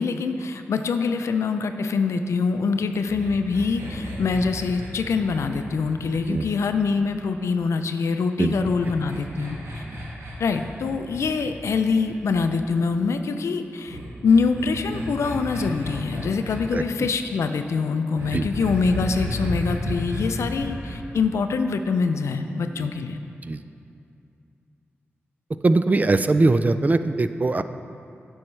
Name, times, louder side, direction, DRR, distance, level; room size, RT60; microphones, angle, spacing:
voice 1, 0.0-9.8 10.4-23.2, left 4 dB, 90° left, 8 dB, 0.4 m, -24 dB
sound 1, 3.0-7.4 8.4-12.5 13.8-16.6 18.2-21.0, equal, 90° right, 1.4 m, -34 dB
voice 2, 25.6-27.6, right 2 dB, 35° right, 11 dB, 0.3 m, -21 dB
9.5 x 6.3 x 3.2 m, 2.6 s
cardioid pair, 55°, 5 cm